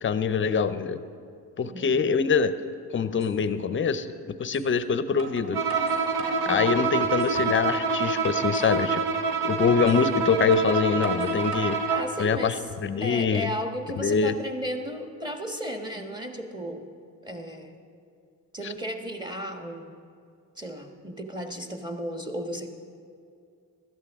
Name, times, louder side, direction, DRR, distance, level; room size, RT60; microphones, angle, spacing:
voice 1, 0.0-1.0 1.6-2.5 2.9-4.1 4.4-5.6 6.4-9.0 9.4-11.8 12.2-12.5 12.8-13.5 14.0-14.3 18.6-18.7, left 6 dB, 30° left, 12 dB, 0.6 m, -24 dB
voice 2, 1.6-1.9 6.4-6.8 11.9-12.6 13.0-16.9 17.2-17.8 18.5-19.9 20.6-22.7, equal, 10° right, 3 dB, 1.3 m, -34 dB
sound 1, 3.2-3.3 4.5-4.7 5.2-6.5 7.0-7.6 8.0-8.1 8.5-8.7 9.9-10.0 10.5-11.8 12.4-12.9, right 1 dB, 45° right, 2.2 m, -41 dB
Bowed string instrument, 5.5-12.2, right 4 dB, 70° right, 1.2 m, -26 dB
16.0 x 12.5 x 3.6 m, 2.3 s
cardioid pair, 85°, 39 cm